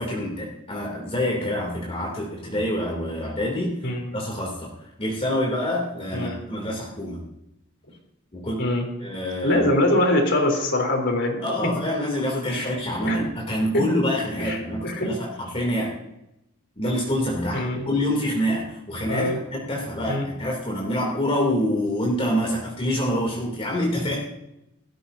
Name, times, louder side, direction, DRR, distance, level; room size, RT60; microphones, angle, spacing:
voice 1, 0.0-3.8 4.1-4.7 5.0-7.2 8.3-8.6 9.0-9.6 11.4-15.9 16.8-24.2, left 1 dB, 30° left, -2 dB, 3.0 m, -26 dB
voice 2, 3.8-4.1 6.1-6.3 8.6-8.8 9.4-11.4 12.5-12.7 13.0-13.2 14.4-14.6 14.8-15.1 17.5-17.8 19.1-19.4 20.1-20.2, left 1 dB, 60° left, 2 dB, 3.6 m, -23 dB
17.5 x 14.5 x 2.8 m, 0.86 s
head